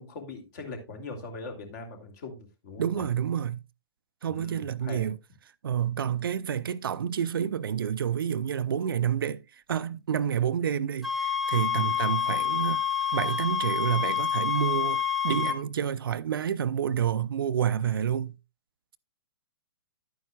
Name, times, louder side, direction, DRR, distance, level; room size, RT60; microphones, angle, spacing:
voice 1, 0.0-3.1 4.3-5.1 11.7-11.9, left 3 dB, 45° left, 2.8 m, -41 dB
voice 2, 2.8-3.6 4.2-5.2 5.6-9.4 9.7-12.8 13.1-18.4, right 8 dB, 65° right, 0.5 m, -29 dB
sound 1, 11.0-15.6, left 8 dB, ahead, 1.0 m, -28 dB
11.0 x 9.3 x 2.3 m
figure-of-eight pair, 120°, 13 cm